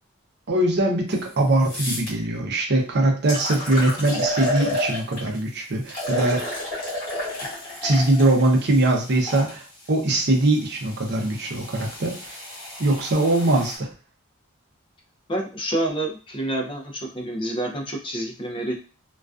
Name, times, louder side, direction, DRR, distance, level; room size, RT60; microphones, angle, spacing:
voice 1, 0.5-6.4 7.8-12.1 12.8-13.9, right 2 dB, 55° right, 2 dB, 0.6 m, -21 dB
sound 1, 1.1-1.2 1.6-2.1 2.8-2.9 3.3-5.4 5.9-9.5 10.3-13.8, left 1 dB, 40° left, 1.1 m, -31 dB
voice 2, 15.3-18.7, right 1 dB, 25° left, 0 dB, 0.4 m, -28 dB
2.3 x 2.3 x 2.3 m, 0.36 s
head